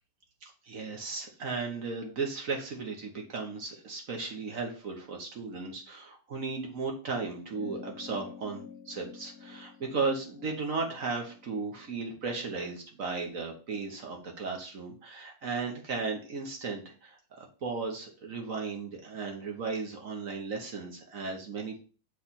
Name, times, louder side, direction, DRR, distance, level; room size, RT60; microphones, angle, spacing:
voice 1, 0.4-21.8, right 4 dB, 45° right, 1 dB, 1.4 m, -35 dB
sound 1, 7.5-12.4, left 6 dB, 65° left, 1.0 m, -48 dB
7.1 x 3.4 x 4.2 m, 0.38 s
omnidirectional pair, 2.3 m